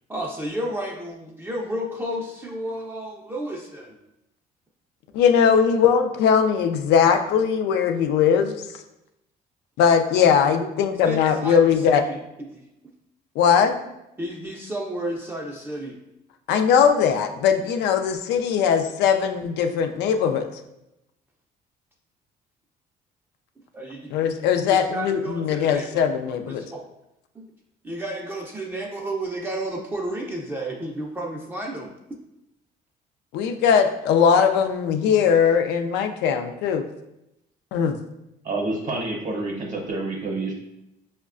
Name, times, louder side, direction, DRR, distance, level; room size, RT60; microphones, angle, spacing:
voice 1, 0.1-4.0 10.6-12.6 14.2-16.0 23.7-24.1 24.7-26.0 26.5-26.8 27.3-27.5 27.8-31.9, right 1 dB, 10° right, -2 dB, 0.4 m, -32 dB
voice 2, 5.1-8.7 9.8-12.0 13.4-13.8 16.5-20.5 24.1-26.6 33.3-36.8 37.7-38.0, left 7 dB, 85° left, 7 dB, 0.4 m, -20 dB
voice 3, 38.4-40.5, right 2 dB, 50° right, 0 dB, 0.7 m, -28 dB
5.2 x 2.1 x 2.4 m, 0.87 s
cardioid pair, 110°, 17 cm